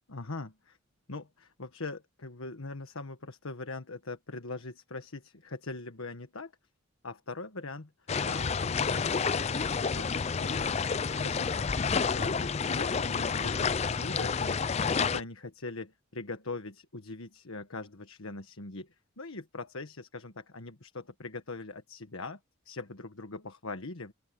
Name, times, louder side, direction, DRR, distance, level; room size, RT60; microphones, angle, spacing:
voice 1, 0.1-0.8 1.1-6.5 7.0-10.7 11.0-22.4 22.6-24.1, left 3 dB, 85° left, 1.5 m, -42 dB
sound 1, 8.1-15.2, left 5 dB, 30° left, 0.4 m, -29 dB
open air
head